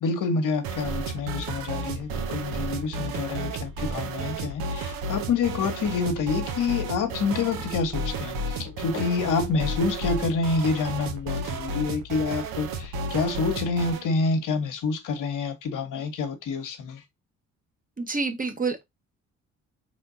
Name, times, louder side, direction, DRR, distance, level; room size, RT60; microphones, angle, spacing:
voice 1, 0.0-17.0, left 4 dB, 60° left, 1.0 m, -27 dB
sound 1, 0.6-14.1, right 2 dB, 75° right, 0.9 m, -32 dB
voice 2, 18.0-18.8, right 4 dB, 25° right, 1.1 m, -28 dB
4.4 x 3.4 x 2.6 m
hypercardioid pair, 50°, 35 cm